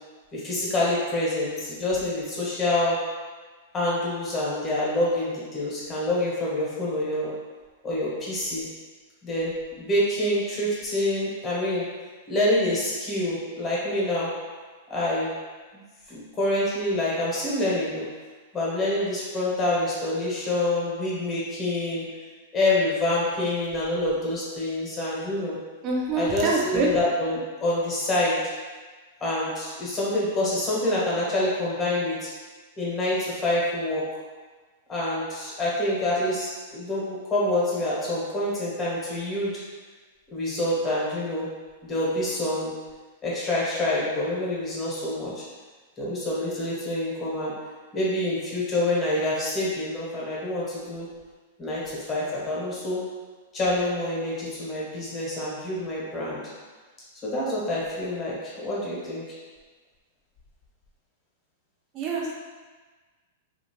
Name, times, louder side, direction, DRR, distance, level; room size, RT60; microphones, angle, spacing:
voice 1, 0.3-3.0 3.7-7.3 7.8-8.7 9.2-11.9 12.3-14.3 14.9-15.3 16.1-18.1 18.5-22.0 22.5-25.6 26.1-28.4 29.2-32.3 32.8-34.0 34.9-39.5 40.3-41.5 41.8-42.7 43.2-45.4 46.0-47.5 47.9-51.1 51.6-53.0 53.5-56.4 57.2-59.2, left 1 dB, 20° left, -6 dB, 1.1 m, -26 dB
voice 2, 25.8-26.9 62.0-62.3, right 3 dB, 35° right, -2 dB, 0.7 m, -26 dB
2.7 x 2.5 x 3.0 m, 1.4 s
hypercardioid pair, 125°, 0 cm